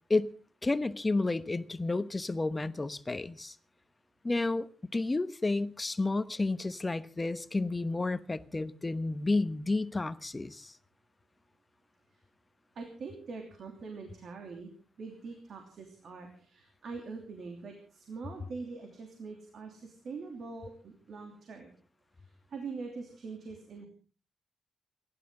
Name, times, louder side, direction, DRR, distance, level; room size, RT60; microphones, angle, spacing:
voice 1, 0.6-3.5 4.2-10.7, left 2 dB, 25° left, 1.0 m, -31 dB
voice 2, 12.7-14.7 15.0-21.7 22.2-23.9, right 4 dB, 65° right, 2.9 m, -43 dB
29.5 x 12.0 x 3.8 m
cardioid pair, 85°, 0 cm